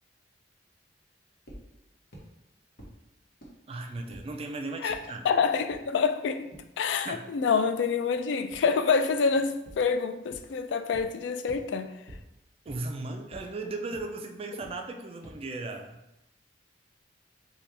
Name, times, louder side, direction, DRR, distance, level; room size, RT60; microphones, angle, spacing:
sound 1, 1.5-1.6 2.1-2.2 2.8-2.9 3.4-3.5 4.1-4.2 4.9-5.0 5.7-5.8 6.5-6.6 8.5-8.6 9.7-9.8 10.3-10.4 10.9-11.0 11.5-11.6 12.1-12.2 12.7-12.8 13.3-13.4 13.9-14.0 14.6-14.7 15.2-15.3, right 1 dB, 60° left, 1.0 m, -45 dB
voice 1, 3.7-5.3 7.0-7.2 12.7-16.0, right 2 dB, 30° right, 4 dB, 0.3 m, -36 dB
voice 2, 5.2-6.5 6.8-11.9, left 5 dB, 80° left, 9 dB, 0.3 m, -27 dB
4.2 x 2.2 x 3.2 m, 0.87 s
head